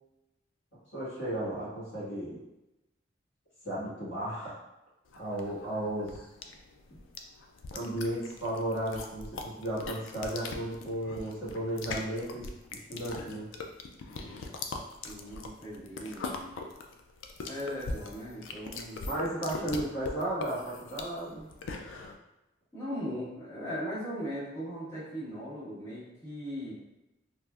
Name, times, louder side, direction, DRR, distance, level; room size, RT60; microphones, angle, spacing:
voice 1, 0.9-2.4 3.6-4.5 5.1-6.2 6.9-7.0 7.7-13.5 19.0-21.5, right 1 dB, 65° left, -9 dB, 1.3 m, -34 dB
sound 1, 5.1-22.1, left 3 dB, 85° left, 0.3 m, -41 dB
voice 2, 15.0-16.5 17.4-19.0 22.7-26.7, equal, 15° left, -13 dB, 1.3 m, -38 dB
3.3 x 2.4 x 2.3 m, 0.95 s
head